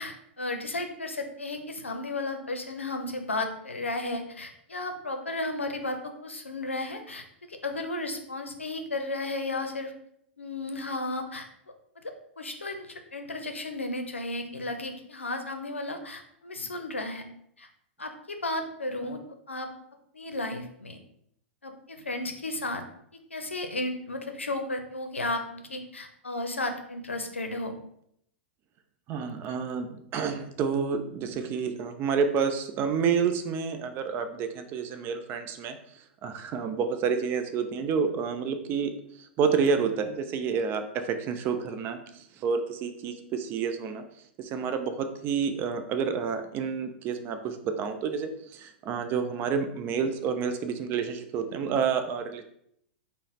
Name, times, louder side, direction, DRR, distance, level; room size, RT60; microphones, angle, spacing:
voice 1, 0.0-9.9 10.4-11.5 12.0-17.2 17.6-17.7 18.0-19.2 19.5-19.7 20.1-21.0 21.6-22.8 23.3-27.7, left 2 dB, 85° left, 5 dB, 0.5 m, -34 dB
voice 2, 29.1-35.8 36.2-44.0 44.4-52.4, right 6 dB, 35° right, 8 dB, 0.5 m, -29 dB
3.8 x 2.1 x 4.1 m, 0.71 s
figure-of-eight pair, 100°, 6 cm